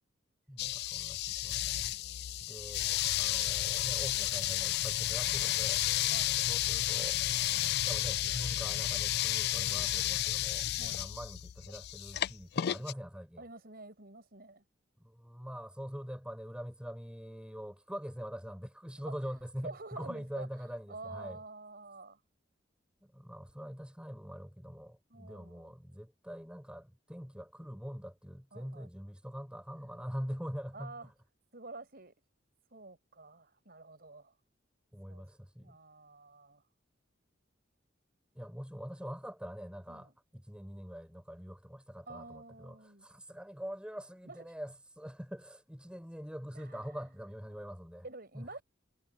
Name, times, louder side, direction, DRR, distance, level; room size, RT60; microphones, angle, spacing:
voice 1, 0.5-2.0 2.4-5.8 6.5-7.2 7.8-13.4 15.0-21.4 23.0-30.9 34.9-35.8 38.3-48.1 48.3-48.6, equal, 5° right, 6.1 m, -44 dB
sound 1, 0.6-12.9, left 13 dB, 55° left, 0.3 m, -32 dB
voice 2, 1.9-3.0 6.1-6.5 6.8-7.9 10.8-11.0 13.4-14.6 19.1-19.2 19.6-22.2 25.1-25.8 28.5-28.9 30.7-31.1 31.5-32.1 32.7-34.3 35.1-35.3 35.6-36.6 39.9-40.1 42.1-43.1 44.2-44.5 46.5-47.0 48.0-48.6, right 3 dB, 50° right, 5.9 m, -49 dB
head